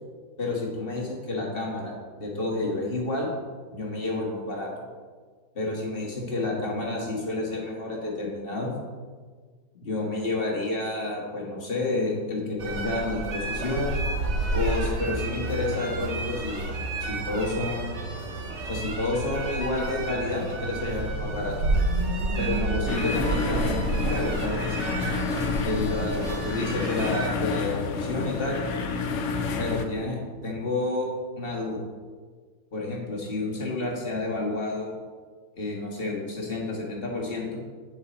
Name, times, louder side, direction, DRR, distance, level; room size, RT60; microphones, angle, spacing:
voice 1, 0.4-3.3 3.7-4.7 5.5-8.7 9.8-13.9 14.5-16.6 17.0-17.9 18.6-21.6 22.4-24.9 25.5-28.6 29.6-30.2 30.4-31.1 31.4-31.8 32.7-34.9 35.6-37.6, left 2 dB, 30° left, -2 dB, 1.7 m, -30 dB
sound 1, 12.6-27.3, right 2 dB, 45° right, 1.2 m, -30 dB
sound 2, 22.9-29.8, left 4 dB, 90° left, 0.6 m, -29 dB
9.1 x 6.7 x 4.1 m, 1.5 s
omnidirectional pair, 2.1 m